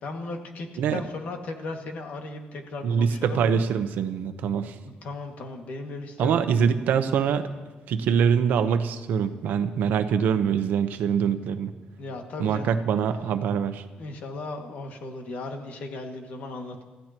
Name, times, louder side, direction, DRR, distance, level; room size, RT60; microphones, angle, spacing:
voice 1, 0.0-3.4 4.8-6.7 12.0-12.8 14.0-16.8, left 2 dB, 60° left, 3 dB, 2.1 m, -36 dB
voice 2, 2.8-4.8 6.2-7.5 7.9-11.7 12.4-13.8, right 7 dB, 75° right, 9 dB, 1.0 m, -24 dB
29.0 x 15.0 x 3.0 m, 1.2 s
cardioid pair, 165°, 3 cm